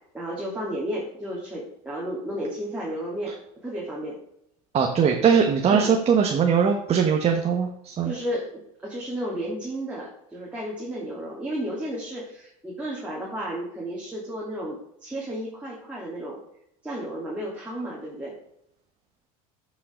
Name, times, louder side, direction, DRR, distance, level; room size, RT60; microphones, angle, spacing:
voice 1, 0.1-3.3 3.6-4.2 5.7-5.9 8.0-16.4 16.8-18.3, equal, 5° right, -6 dB, 2.9 m, -33 dB
voice 2, 4.7-8.1, right 7 dB, 35° right, 3 dB, 1.2 m, -21 dB
11.0 x 5.7 x 3.8 m, 0.76 s
supercardioid pair, 100°, 19 cm